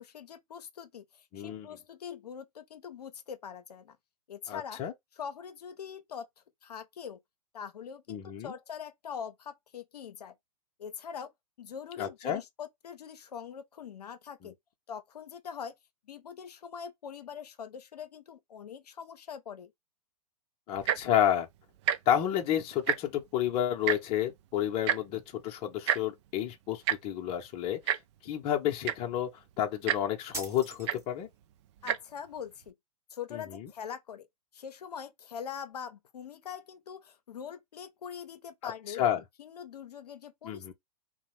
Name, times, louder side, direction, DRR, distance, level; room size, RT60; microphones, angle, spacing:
voice 1, 0.0-4.0 4.3-4.8 5.1-6.3 6.6-7.2 7.5-10.3 10.8-11.3 11.6-14.5 14.9-15.7 16.1-19.7 31.8-32.7 33.1-34.3 34.5-40.7, left 7 dB, 85° left, 0.5 m, -43 dB
voice 2, 1.3-1.7 4.5-4.9 8.1-8.5 12.0-12.4 20.7-21.5 22.1-28.0 28.2-29.3 29.6-31.3 33.3-33.7 38.6-38.7 39.0-39.2 40.4-40.7, left 10 dB, 30° left, 0.6 m, -30 dB
Tick-tock, 20.7-21.1 21.8-22.0 22.3-22.4 22.7-23.2 23.9-24.0 24.9-25.0 25.9-26.0 26.9-27.0 27.9-28.0 28.6-28.7 28.8-29.2 29.9-30.0 30.9-31.0 31.8-32.0 32.7-32.8, right 10 dB, 50° right, 0.4 m, -28 dB
sound 1, 30.3-31.4, right 2 dB, 15° right, 1.0 m, -42 dB
2.6 x 2.0 x 3.0 m
hypercardioid pair, 120°, 20 cm